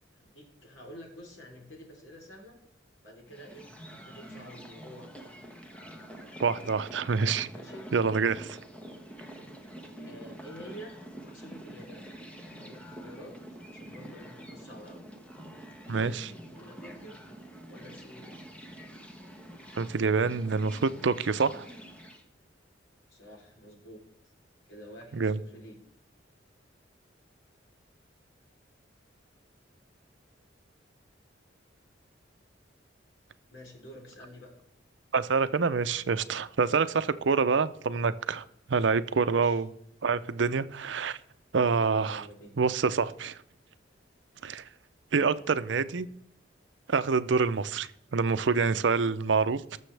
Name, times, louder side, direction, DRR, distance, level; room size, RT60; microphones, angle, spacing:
voice 1, 0.1-2.6 3.0-5.3 7.5-7.9 10.1-11.0 11.3-12.1 12.6-13.3 13.7-15.1 15.9-17.2 17.7-18.4 23.1-24.0 24.7-25.8 33.5-34.5 37.3-37.6 39.1-39.6 42.0-42.6, equal, 85° left, 0 dB, 3.5 m, -49 dB
sound 1, 3.3-22.2, right 1 dB, 5° left, 1.2 m, -46 dB
voice 2, 6.4-7.5 7.9-8.6 15.9-16.3 19.8-21.7 25.1-25.4 35.1-39.7 40.0-41.2 41.5-42.3 42.6-43.4 44.4-44.6 45.1-46.1 46.9-49.8, right 5 dB, 70° right, 14 dB, 0.6 m, -27 dB
19.5 x 6.9 x 3.4 m, 0.76 s
head